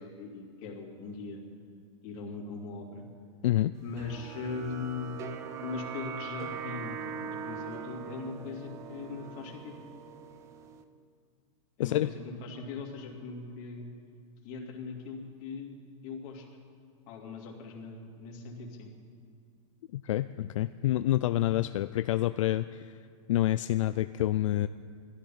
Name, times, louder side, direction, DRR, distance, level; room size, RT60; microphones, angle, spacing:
voice 1, 0.0-1.4 2.0-3.1 3.8-5.2 5.6-9.8 11.8-13.9 14.4-15.8 16.0-16.5 17.1-18.9, left 4 dB, 35° left, -1 dB, 2.7 m, -40 dB
sound 1, 4.0-10.8, right 7 dB, 15° right, 0.5 m, -41 dB
voice 2, 19.9-22.9 23.3-24.7, left 14 dB, 70° left, 12 dB, 0.4 m, -27 dB
16.5 x 12.5 x 5.8 m, 2.4 s
supercardioid pair, 165°, 17 cm